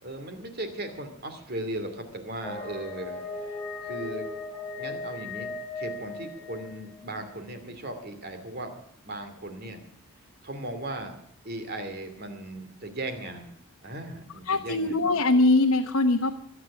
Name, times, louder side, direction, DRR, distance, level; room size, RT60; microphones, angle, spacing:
voice 1, 0.0-4.3 4.8-8.7 9.0-9.8 10.4-11.1 11.4-15.0, right 1 dB, 45° right, 7 dB, 2.5 m, -37 dB
sound 1, 2.4-7.1, left 2 dB, 5° left, 3.3 m, -37 dB
voice 2, 14.5-16.5, left 2 dB, 80° left, 2 dB, 1.1 m, -22 dB
22.5 x 8.1 x 7.1 m, 0.66 s
head